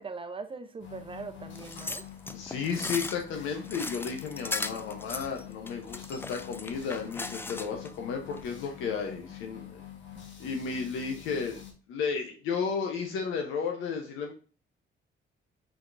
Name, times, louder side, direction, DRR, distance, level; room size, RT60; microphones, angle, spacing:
voice 1, 0.0-2.1, right 4 dB, 25° right, 0.7 m, -41 dB
sound 1, 0.8-11.7, left 10 dB, 70° left, 1.2 m, -47 dB
sound 2, 1.6-7.9 8.3-8.5, left 3 dB, 10° left, 0.3 m, -38 dB
voice 2, 2.3-9.8 10.4-11.6 11.9-14.3, left 5 dB, 90° left, 0.9 m, -33 dB
5.0 x 3.7 x 2.6 m
cardioid pair, 90°, 20 cm